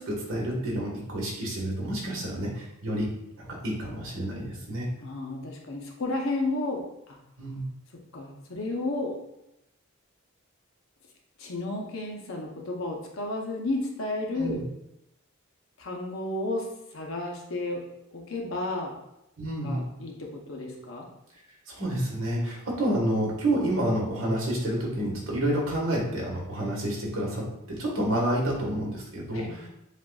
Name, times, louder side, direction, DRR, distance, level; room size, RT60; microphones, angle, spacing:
voice 1, 0.0-3.1 3.4-4.9 7.4-7.6 14.4-14.6 19.4-19.8 21.7-29.7, right 1 dB, 70° right, -3 dB, 1.5 m, -29 dB
voice 2, 5.0-7.2 8.1-9.1 11.4-14.6 15.8-17.8 18.1-18.9 19.6-21.1 29.3-29.7, left 2 dB, 70° left, 0 dB, 0.8 m, -32 dB
7.3 x 2.5 x 2.4 m, 0.85 s
head